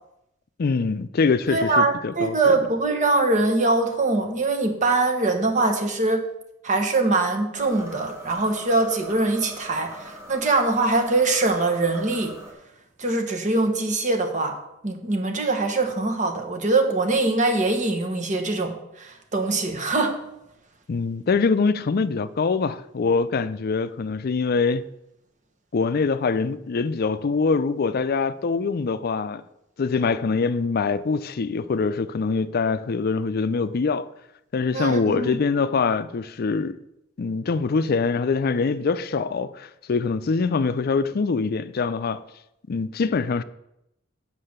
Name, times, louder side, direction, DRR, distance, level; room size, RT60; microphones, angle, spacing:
voice 1, 0.6-2.5 20.9-24.8 25.7-29.4 29.8-34.1 34.5-36.8 37.2-42.2 42.7-43.4, left 4 dB, 50° left, 0.4 m, -24 dB
voice 2, 1.5-6.2 6.6-12.4 13.0-14.6 14.8-20.2 34.7-35.4, right 2 dB, 40° right, 1.3 m, -23 dB
sound 1, 7.5-12.5, equal, 15° right, 2.2 m, -42 dB
7.6 x 5.6 x 6.6 m
head